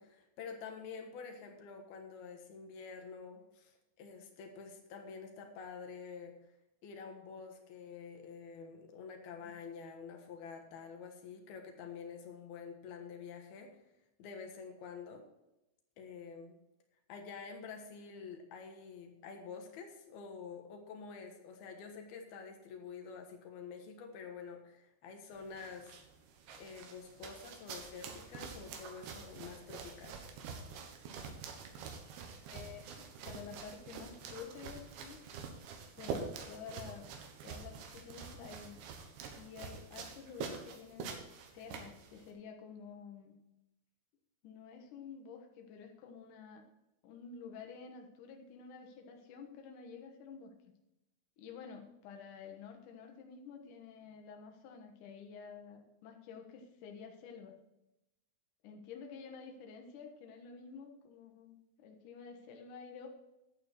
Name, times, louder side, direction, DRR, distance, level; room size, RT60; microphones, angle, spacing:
voice 1, 0.0-6.4 6.8-13.7 14.2-15.2 16.0-16.6 17.1-25.9 26.6-30.2, left 5 dB, 65° left, 3 dB, 2.7 m, -48 dB
sound 1, 25.3-42.3, right 5 dB, 70° right, 3.3 m, -46 dB
voice 2, 32.5-35.2 36.0-37.1 37.4-38.8 39.4-41.1 41.5-43.3 44.4-46.6 47.0-50.5 51.4-57.6 58.6-63.1, left 6 dB, 90° left, 3 dB, 1.8 m, -50 dB
11.5 x 8.7 x 4.5 m, 0.91 s
omnidirectional pair, 5.7 m